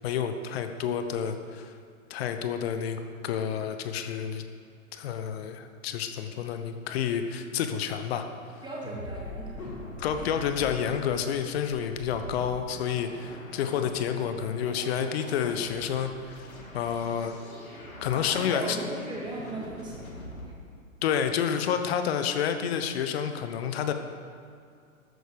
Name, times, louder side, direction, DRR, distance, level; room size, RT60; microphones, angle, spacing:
voice 1, 0.0-1.7 2.1-4.4 4.9-8.3 10.0-16.5 16.7-17.4 18.0-18.8 21.0-23.9, left 8 dB, 45° left, 7 dB, 1.2 m, -29 dB
voice 2, 8.6-9.7 18.1-20.5, right 2 dB, 10° right, -4 dB, 2.9 m, -38 dB
sound 1, 8.8-20.5, left 1 dB, 80° left, 2.8 m, -43 dB
13.0 x 9.2 x 5.1 m, 2.3 s
figure-of-eight pair, 115°, 41 cm